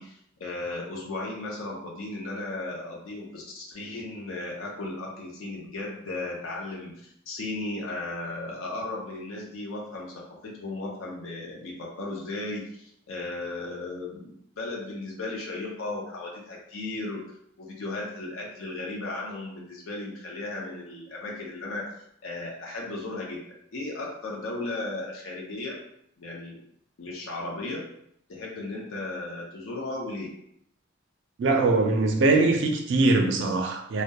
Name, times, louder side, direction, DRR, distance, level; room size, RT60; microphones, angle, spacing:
voice 1, 0.0-21.9 22.2-23.4 23.7-25.8 26.2-26.6 27.0-27.9 28.3-30.3, left 2 dB, 90° left, 0.5 m, -35 dB
voice 2, 31.4-34.0, right 3 dB, 60° right, 0.4 m, -22 dB
2.7 x 2.1 x 2.2 m
head